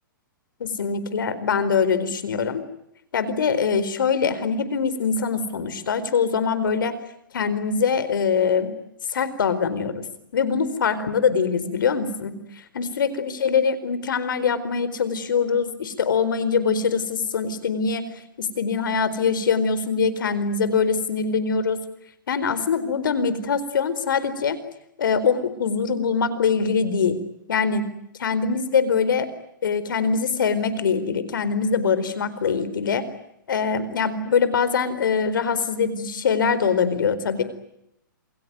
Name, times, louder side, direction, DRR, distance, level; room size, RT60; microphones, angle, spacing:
voice 1, 0.6-2.6 3.1-6.9 7.3-8.7 9.1-10.0 10.3-12.4 12.7-18.1 18.4-21.8 22.3-24.6 25.0-27.2 27.5-27.8 28.2-29.3 29.6-33.1 33.5-37.4, left 6 dB, 70° left, 14 dB, 4.4 m, -23 dB
28.0 x 21.5 x 9.5 m, 0.80 s
hypercardioid pair, 130°, 11 cm